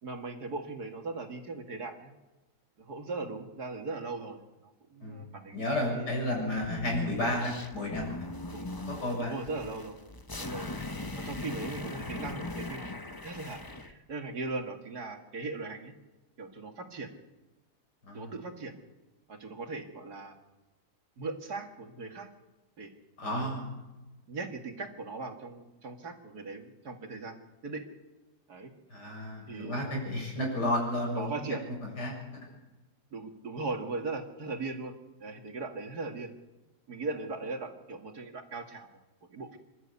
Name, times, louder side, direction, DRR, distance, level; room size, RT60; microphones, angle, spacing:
voice 1, 0.0-2.1 2.8-6.2 8.5-8.7 9.2-10.0 10.4-10.8 11.2-15.9 16.4-17.1 18.1-18.7 19.3-20.4 21.2-22.3 22.8-22.9 23.3-23.5 24.3-27.8 28.5-28.7 29.5-29.8 31.2-31.6 33.1-34.9 35.2-36.3 36.9-38.9 39.3-39.6, right 3 dB, 70° right, 4 dB, 2.7 m, -39 dB
voice 2, 5.5-8.3 8.9-9.3 18.0-18.3 23.2-23.7 28.9-31.3 32.0-32.1, left 1 dB, 90° left, 0 dB, 7.6 m, -32 dB
sound 1, 6.5-13.9, left 2 dB, 15° left, 0.9 m, -40 dB
27.0 x 12.5 x 8.4 m, 1.1 s
omnidirectional pair, 1.7 m